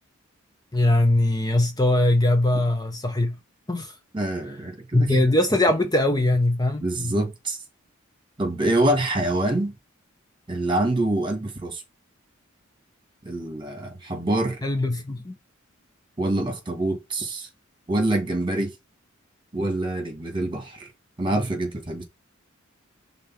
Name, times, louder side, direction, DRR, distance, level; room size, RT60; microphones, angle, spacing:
voice 1, 0.7-3.4 3.7-3.9 4.9-7.2 14.6-15.4, left 1 dB, 20° left, 0.8 m, -21 dB
voice 2, 4.1-5.2 6.8-7.6 8.4-9.7 10.5-11.8 13.2-14.6 16.2-17.5 17.9-18.7 19.5-20.9 21.2-22.0, right 1 dB, 25° right, 2.0 m, -25 dB
5.4 x 3.9 x 5.7 m
head